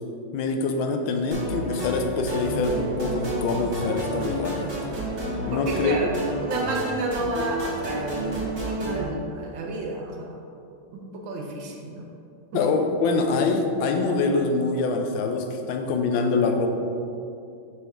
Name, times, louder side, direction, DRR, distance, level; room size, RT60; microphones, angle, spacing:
voice 1, 0.3-4.7 5.4-6.2 12.5-16.7, left 3 dB, 80° left, 5 dB, 1.3 m, -24 dB
sound 1, 1.3-9.0, right 1 dB, 35° right, 1.3 m, -31 dB
voice 2, 5.5-6.1 6.4-10.3 10.9-12.1 12.5-12.6, right 2 dB, 75° right, 1 dB, 1.4 m, -31 dB
5.3 x 4.2 x 4.5 m, 2.6 s
omnidirectional pair, 2.2 m